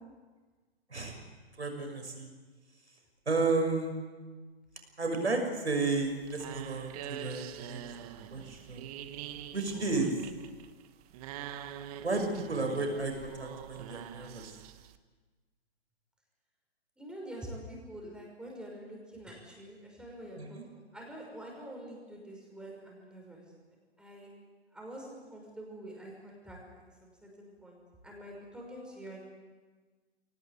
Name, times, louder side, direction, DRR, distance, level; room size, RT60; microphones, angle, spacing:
voice 1, 1.6-2.3 3.3-3.9 5.0-7.8 8.3-8.9 9.5-10.1 12.0-14.5 20.4-20.6, right 3 dB, 85° right, 4 dB, 6.2 m, -32 dB
sound 1, 5.9-15.0, right 11 dB, 35° right, 1.3 m, -45 dB
voice 2, 17.0-23.4 24.0-24.3 24.7-29.2, right 1 dB, 5° right, -1 dB, 6.0 m, -46 dB
23.0 x 18.5 x 8.4 m, 1.4 s
figure-of-eight pair, 125°, 32 cm